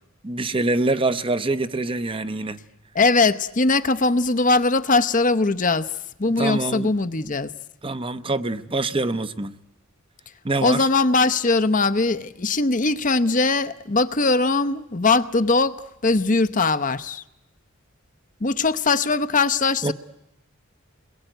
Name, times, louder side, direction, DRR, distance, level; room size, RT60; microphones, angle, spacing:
voice 1, 0.2-2.6 6.4-6.9 7.8-9.5 10.4-10.8 19.8-19.9, right 2 dB, 25° right, 0.9 m, -25 dB
voice 2, 2.9-5.9 6.2-7.5 10.6-17.2 18.4-19.9, left 3 dB, 40° left, 0.9 m, -21 dB
29.0 x 21.5 x 9.2 m
head